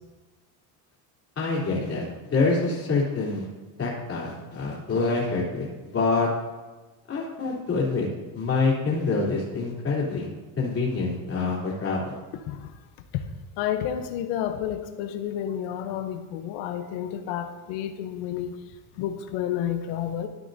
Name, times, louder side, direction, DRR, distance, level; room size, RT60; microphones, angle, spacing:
voice 1, 1.4-3.5 3.8-6.3 7.1-8.1 8.3-10.3 10.6-12.1, left 3 dB, 30° left, -5 dB, 3.2 m, -26 dB
voice 2, 13.6-18.5 19.0-20.3, left 10 dB, 80° left, 8 dB, 0.9 m, -30 dB
13.5 x 9.3 x 2.7 m, 1.3 s
cardioid pair, 130°, 43 cm